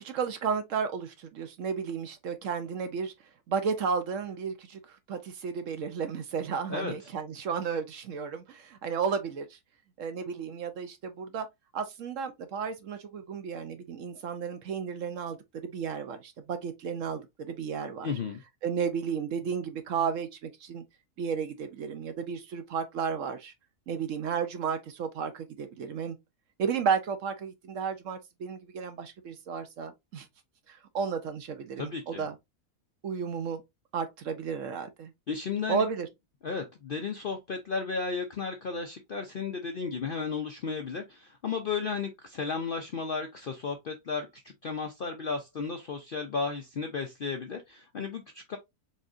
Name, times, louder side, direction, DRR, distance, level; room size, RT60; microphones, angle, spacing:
voice 1, 0.0-3.1 3.5-9.6 10.0-11.5 11.7-15.4 15.7-18.1 18.6-20.8 21.2-23.5 23.9-26.2 26.6-30.3 30.7-32.3 33.0-33.6 33.9-35.1 35.7-36.1, right 6 dB, 65° right, 0.9 m, -33 dB
voice 2, 18.0-18.4 31.8-32.3 35.3-35.8 36.4-48.6, left 5 dB, 60° left, 0.5 m, -34 dB
4.2 x 3.6 x 2.5 m
omnidirectional pair, 1.6 m